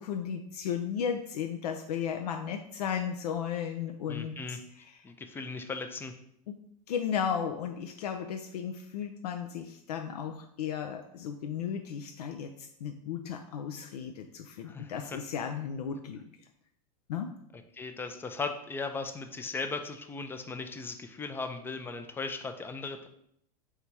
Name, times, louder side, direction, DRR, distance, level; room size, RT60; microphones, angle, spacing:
voice 1, 0.0-5.0 6.5-6.6 6.9-16.2 17.1-17.3, left 8 dB, 90° left, 5 dB, 0.4 m, -35 dB
voice 2, 4.1-4.6 5.0-6.1 14.6-15.2 17.5-23.1, left 4 dB, 10° left, 7 dB, 0.4 m, -37 dB
3.5 x 2.7 x 4.5 m, 0.71 s
hypercardioid pair, 115°, 20 cm